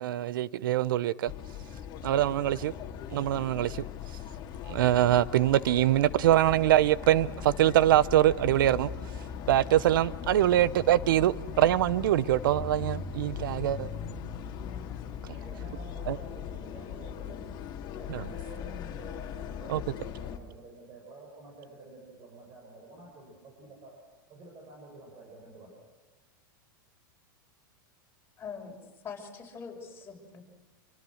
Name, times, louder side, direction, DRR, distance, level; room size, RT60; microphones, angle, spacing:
voice 1, 0.0-1.3 2.0-2.7 3.1-3.9 4.7-8.9 9.5-13.9 16.1-16.2 18.1-18.2 19.7-19.8, right 13 dB, 75° right, 0.8 m, -24 dB
sound 1, 1.3-20.4, left 8 dB, 40° left, 2.4 m, -39 dB
voice 2, 15.3-17.6 18.0-24.0 24.3-25.7, right 2 dB, 35° right, 7.2 m, -49 dB
voice 3, 28.4-28.8 29.0-30.4, left 6 dB, 20° left, 6.2 m, -42 dB
26.5 x 24.0 x 6.5 m
hypercardioid pair, 115°, 11 cm